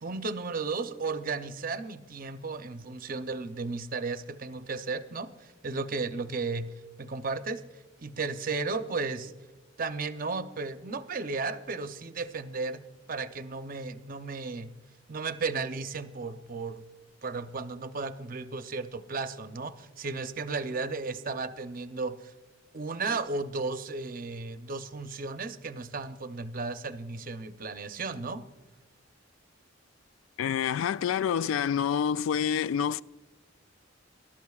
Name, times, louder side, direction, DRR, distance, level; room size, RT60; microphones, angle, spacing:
voice 1, 0.0-6.7 7.0-7.6 8.0-9.3 9.8-12.8 13.1-14.7 15.1-16.8 17.2-22.3 22.7-28.4, right 4 dB, 45° right, 0.6 m, -34 dB
voice 2, 30.4-33.0, left 8 dB, 85° left, 0.3 m, -27 dB
20.5 x 12.5 x 2.4 m
head